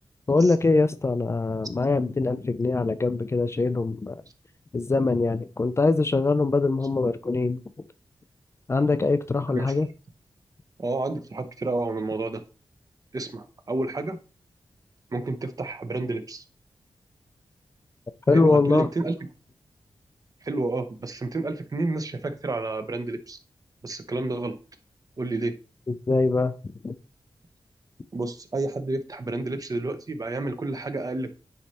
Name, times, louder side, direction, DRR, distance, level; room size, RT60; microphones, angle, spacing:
voice 1, 0.3-4.2 4.7-7.6 8.7-9.9 18.3-18.9 26.1-26.5 26.8-27.0, left 3 dB, 30° left, 0.4 m, -23 dB
voice 2, 9.5-9.8 10.8-12.4 13.1-14.2 15.1-16.4 18.3-19.1 20.4-23.4 23.8-24.6 25.2-25.5 28.1-31.3, right 2 dB, 40° right, 0.8 m, -30 dB
9.4 x 3.2 x 4.2 m
wide cardioid pair, 110°, 10 cm